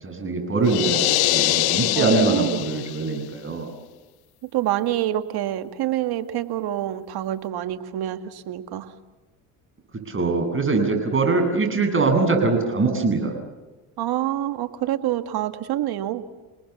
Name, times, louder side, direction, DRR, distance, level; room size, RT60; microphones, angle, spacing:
voice 1, 0.0-3.7 9.9-13.3, right 3 dB, 30° right, 4 dB, 7.8 m, -22 dB
sound 1, 0.6-3.2, left 19 dB, 60° left, 0.7 m, -23 dB
voice 2, 2.0-2.6 4.5-8.9 14.0-16.3, right 13 dB, 60° right, 9 dB, 1.9 m, -26 dB
29.5 x 19.5 x 7.3 m, 1.2 s
supercardioid pair, 85°, 43 cm